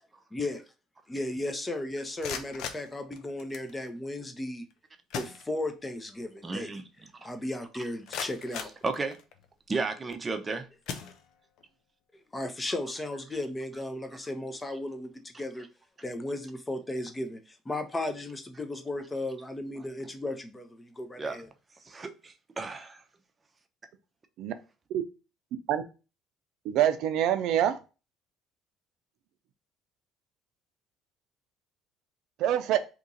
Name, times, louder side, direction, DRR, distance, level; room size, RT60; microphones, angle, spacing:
voice 1, 0.3-0.6 1.1-4.6 5.1-6.7 7.2-8.7 12.3-15.7 16.0-21.5, left 1 dB, 20° left, 0.6 m, -35 dB
sound 1, 2.0-3.7 4.7-4.8 5.1-6.0 6.4-6.5 7.0-7.1 7.7-9.5 10.2-10.4 10.8-11.7, left 7 dB, 70° left, 0.5 m, -40 dB
voice 2, 6.4-6.8 7.2-7.3 7.7-7.8 8.8-9.2 9.7-10.7 21.2-21.4 21.8-23.0, right 3 dB, 25° right, 0.6 m, -33 dB
voice 3, 26.6-27.8 32.4-32.8, right 11 dB, 70° right, 0.4 m, -25 dB
2.9 x 2.6 x 3.7 m
supercardioid pair, 80°, 0 cm